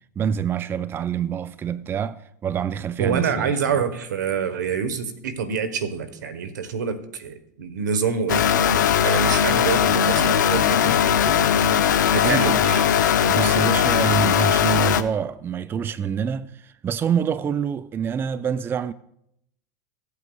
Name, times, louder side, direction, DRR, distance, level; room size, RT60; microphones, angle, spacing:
voice 1, 0.2-3.6 12.2-12.6 13.3-18.9, right 7 dB, 25° right, 0.4 m, -26 dB
voice 2, 3.0-12.9, right 6 dB, 85° right, 1.1 m, -27 dB
sound 1, 8.3-15.0, left 8 dB, 85° left, 0.6 m, -19 dB
16.5 x 8.3 x 2.3 m
hypercardioid pair, 100°, 9 cm